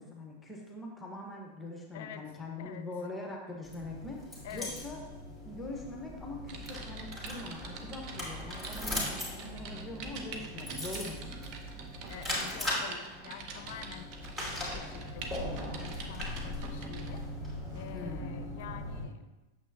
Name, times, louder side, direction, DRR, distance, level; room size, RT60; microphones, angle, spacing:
voice 1, 0.0-5.0 5.4-11.5 17.9-18.4, left 2 dB, 10° left, 0 dB, 1.3 m, -43 dB
voice 2, 1.9-2.3 2.6-2.9 4.4-4.7 12.1-17.3 17.7-19.2, left 8 dB, 50° left, 10 dB, 0.6 m, -47 dB
sound 1, 3.6-19.0, left 1 dB, 5° right, 2.6 m, -39 dB
Typing, 6.5-17.2 17.7-17.9, right 4 dB, 40° right, 1.0 m, -46 dB
8.8 x 7.1 x 2.8 m, 1.1 s
figure-of-eight pair, 90°, 0 cm